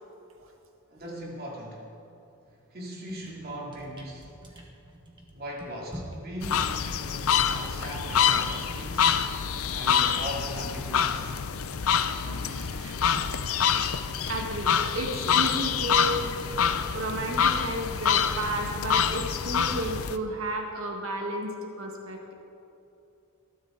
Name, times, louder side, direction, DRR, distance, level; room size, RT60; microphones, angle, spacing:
voice 1, 0.9-1.9 2.7-4.4 5.3-9.3 9.7-11.4, equal, 45° right, -3 dB, 3.2 m, -39 dB
sound 1, 2.4-2.6 3.0-11.8 12.1-18.0, right 1 dB, 20° right, 1.8 m, -49 dB
sound 2, 6.4-20.2, left 7 dB, 70° left, 0.6 m, -26 dB
voice 2, 12.2-13.0 14.2-16.6 16.9-22.3, right 1 dB, 65° right, 2 dB, 1.8 m, -33 dB
20.5 x 14.0 x 4.0 m, 2.7 s
head